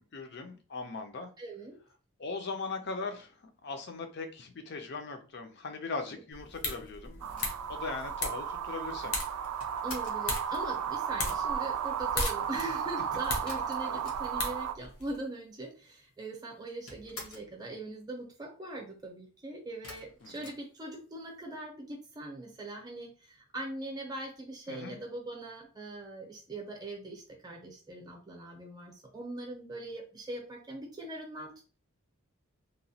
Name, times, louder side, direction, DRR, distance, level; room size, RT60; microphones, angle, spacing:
voice 1, 0.0-1.3 2.2-9.2 13.8-14.0 20.2-20.5 24.7-25.0, left 4 dB, 50° left, 0.5 m, -40 dB
voice 2, 1.4-1.8 9.8-31.8, right 2 dB, 20° right, 0.6 m, -41 dB
sound 1, 6.3-15.2, left 2 dB, 70° left, 0.8 m, -39 dB
sound 2, 7.2-14.7, right 8 dB, 85° right, 0.3 m, -34 dB
sound 3, 7.3-10.3 13.5-14.6 14.9-15.0 15.2-16.0 16.3-17.6 19.8-21.3, left 2 dB, 85° left, 1.1 m, -49 dB
2.9 x 2.2 x 2.7 m
head